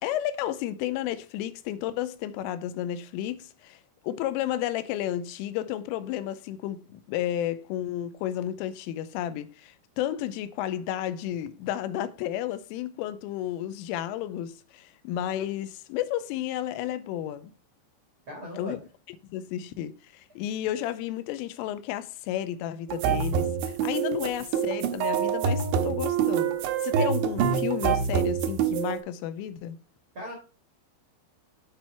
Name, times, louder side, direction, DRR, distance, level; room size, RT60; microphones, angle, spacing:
voice 1, 0.0-3.8 4.0-17.5 18.6-18.8 19.2-26.6 26.8-29.8, left 12 dB, 90° left, 3.1 m, -32 dB
voice 2, 18.3-18.7 30.1-30.3, equal, 60° right, 1.3 m, -37 dB
sound 1, 22.9-29.0, right 8 dB, 80° right, 2.7 m, -26 dB
9.0 x 4.4 x 4.4 m
omnidirectional pair, 5.7 m